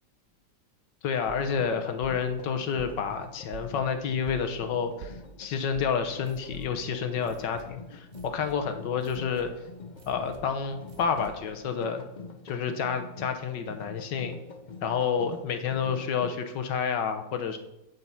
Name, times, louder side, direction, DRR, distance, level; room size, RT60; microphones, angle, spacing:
voice 1, 1.0-8.1 8.3-9.5 10.1-12.0 12.5-14.4 14.8-17.6, left 6 dB, 80° left, 8 dB, 1.7 m, -29 dB
sound 1, 1.4-16.3, left 4 dB, 55° left, 0.5 m, -46 dB
sound 2, 2.8-7.1, right 8 dB, 65° right, 1.0 m, -47 dB
sound 3, 6.2-11.6, right 2 dB, 90° right, 2.0 m, -52 dB
8.7 x 7.7 x 5.7 m, 0.93 s
omnidirectional pair, 1.9 m